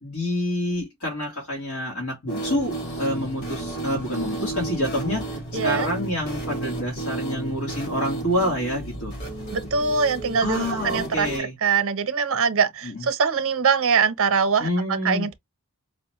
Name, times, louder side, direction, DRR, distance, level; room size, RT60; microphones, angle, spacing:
voice 1, 0.0-9.1 10.4-11.5 12.8-13.1 14.6-15.3, left 1 dB, 75° left, 1.4 m, -27 dB
sound 1, 2.3-11.4, right 2 dB, 50° left, 2.0 m, -32 dB
voice 2, 5.5-5.9 9.5-15.4, right 5 dB, 65° right, 0.7 m, -23 dB
4.8 x 2.1 x 2.9 m
head